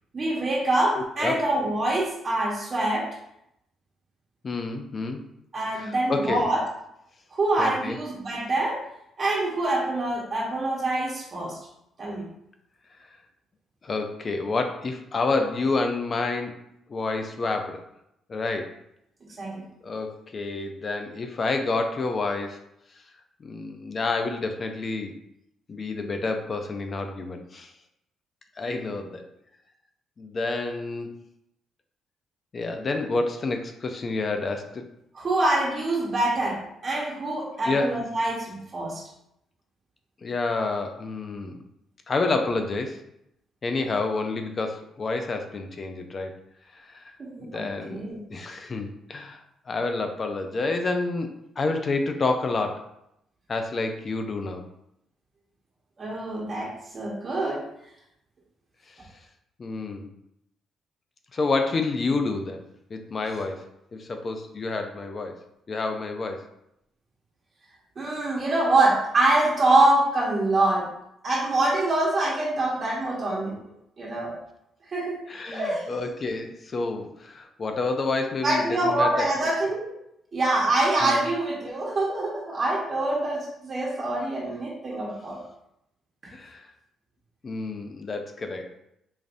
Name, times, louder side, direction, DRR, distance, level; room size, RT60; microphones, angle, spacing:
voice 1, 0.1-3.1 5.5-6.6 7.3-8.8 9.2-11.6 12.0-12.3 19.4-19.7 35.1-39.0 47.2-48.2 56.0-57.6 68.0-70.9 71.2-73.6 74.0-74.4 74.9-75.2 75.5-75.9 78.4-79.9 80.3-85.4 86.2-86.3, right 2 dB, 40° right, -4 dB, 1.0 m, -25 dB
voice 2, 0.9-1.4 4.4-5.2 5.7-6.5 7.6-8.0 13.8-16.6 16.9-17.8 18.3-18.7 19.8-22.6 23.4-25.2 25.7-27.7 28.6-29.3 30.2-31.2 32.5-34.9 37.6-38.0 40.2-41.6 42.1-43.0 43.6-46.4 46.7-47.0 47.4-48.0 48.3-52.8 53.5-54.6 59.6-60.1 61.3-62.6 62.9-65.4 65.7-66.4 75.3-79.3 81.0-81.2 86.3-86.7 87.4-88.7, left 3 dB, 40° left, 6 dB, 0.5 m, -29 dB
5.0 x 2.5 x 2.6 m, 0.79 s
cardioid pair, 90°, 0 cm